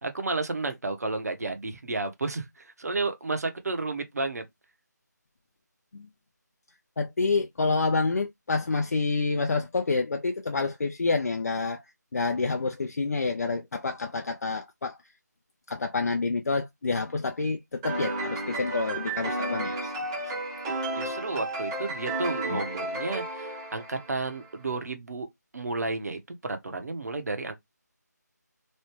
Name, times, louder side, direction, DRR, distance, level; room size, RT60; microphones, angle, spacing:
voice 1, 0.0-4.4 20.9-25.3 25.5-27.5, right 3 dB, 60° right, 1.0 m, -32 dB
voice 2, 7.0-11.8 12.1-15.0 15.7-19.9 22.5-22.6, left 3 dB, 60° left, 0.4 m, -28 dB
sound 1, 17.8-24.5, right 2 dB, 15° right, 0.9 m, -32 dB
3.1 x 2.3 x 3.0 m
figure-of-eight pair, 160°, 10 cm